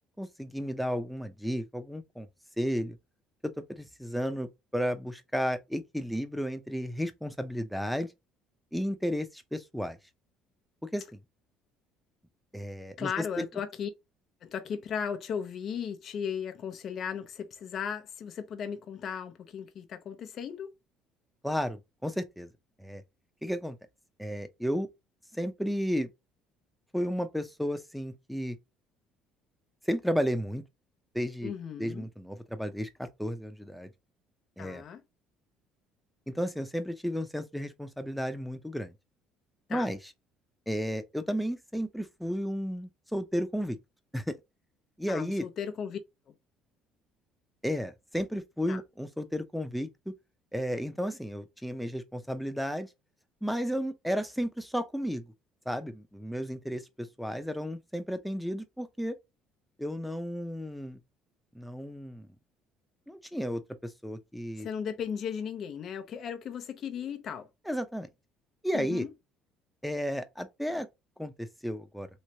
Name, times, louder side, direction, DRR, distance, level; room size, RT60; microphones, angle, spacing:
voice 1, 0.2-2.3 2.6-3.0 3.4-8.1 8.7-10.0 10.8-11.0 12.5-13.1 13.4-13.5 21.4-22.5 22.8-23.0 23.4-23.8 24.2-24.9 25.4-26.1 26.9-28.6 29.9-30.6 31.1-31.5 31.8-33.9 34.6-34.8 36.3-38.9 39.7-40.0 40.7-43.8 44.1-44.4 45.0-45.5 47.6-50.1 50.5-52.9 53.4-55.2 55.7-59.2 59.8-61.0 61.5-62.3 63.1-64.7 67.7-68.1 68.6-69.1 69.8-70.9 71.2-72.1, equal, ahead, 0.8 m, -33 dB
voice 2, 13.0-13.9 14.4-20.7 31.4-32.1 34.6-35.0 39.7-39.9 45.1-46.0 46.3-46.4 48.7-48.8 64.6-67.5 68.7-69.1, left 7 dB, 55° left, 0.8 m, -36 dB
3.2 x 3.1 x 2.9 m
supercardioid pair, 80°, 0 cm